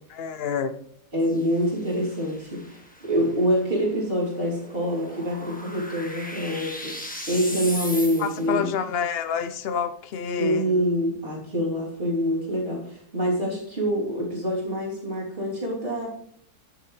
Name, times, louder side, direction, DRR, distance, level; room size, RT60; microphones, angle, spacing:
voice 1, 0.1-0.7 8.2-10.7, left 7 dB, 60° left, 12 dB, 0.6 m, -28 dB
voice 2, 1.1-7.0 7.3-8.7 10.4-16.1, equal, 35° right, -4 dB, 3.4 m, -26 dB
sound 1, 1.2-8.6, left 1 dB, 5° left, 1.3 m, -39 dB
15.5 x 7.5 x 3.2 m, 0.66 s
omnidirectional pair, 1.7 m